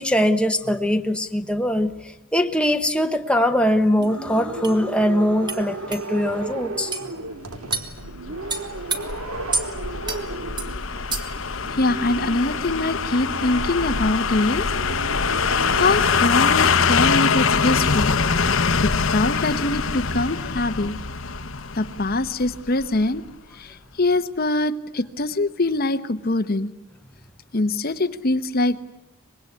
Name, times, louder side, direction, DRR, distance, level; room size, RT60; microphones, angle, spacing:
voice 1, 0.0-6.9 10.1-10.2 16.4-16.5, equal, 5° left, 6 dB, 1.0 m, -22 dB
sound 1, 3.7-16.1, right 2 dB, 90° right, 2.1 m, -35 dB
sound 2, 4.0-4.1 4.6-4.8 5.5-5.6 5.9-6.0 6.9-7.1 7.7-7.9 8.5-9.0 9.5-9.7 10.1-10.2 10.6-10.7 11.1-11.4, right 4 dB, 20° right, 2.0 m, -27 dB
sound 3, 8.0-23.0 23.3-23.4, left 5 dB, 65° left, 1.0 m, -23 dB
voice 2, 11.7-14.7 15.4-18.1 18.8-21.0 21.7-23.2 23.5-26.7 27.5-28.8, left 2 dB, 45° left, 10 dB, 0.9 m, -23 dB
25.0 x 21.0 x 9.6 m, 0.88 s
head